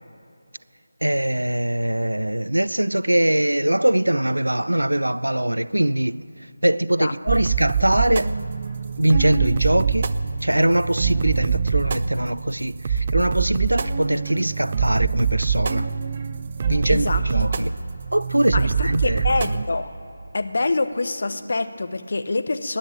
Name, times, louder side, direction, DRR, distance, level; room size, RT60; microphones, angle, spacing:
voice 1, 1.0-8.4 9.0-10.1 10.4-15.9 16.7-17.8 18.1-19.3, right 1 dB, 75° right, 0.4 m, -22 dB
sound 1, 7.3-19.7, right 6 dB, 30° right, 0.6 m, -25 dB
voice 2, 16.9-17.2 18.5-19.9 20.3-22.8, left 3 dB, 50° left, 0.9 m, -25 dB
20.0 x 9.8 x 7.3 m
figure-of-eight pair, 160°, 0 cm